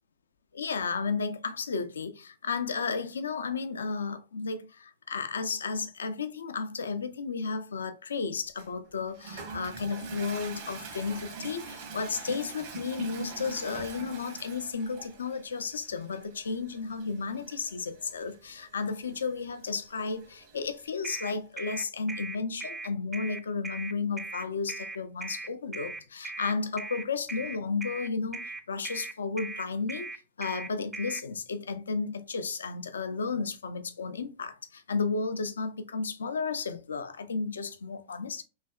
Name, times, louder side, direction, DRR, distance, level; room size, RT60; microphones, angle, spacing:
voice 1, 0.6-30.1 30.4-38.4, left 4 dB, 90° left, 0.4 m, -33 dB
Toilet flush, 8.6-21.4, right 4 dB, 60° right, 1.2 m, -44 dB
sound 1, 21.0-31.2, right 3 dB, 10° right, 0.4 m, -39 dB
3.2 x 2.7 x 2.3 m
hypercardioid pair, 110°, 0 cm